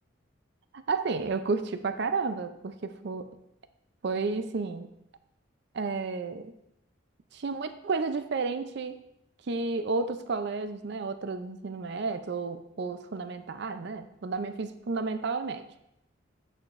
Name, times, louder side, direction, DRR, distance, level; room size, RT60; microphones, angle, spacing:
voice 1, 0.7-3.4 4.0-4.9 5.7-6.5 7.3-9.0 9.5-15.7, right 4 dB, 60° right, 10 dB, 0.5 m, -32 dB
8.6 x 6.5 x 2.5 m, 0.81 s
head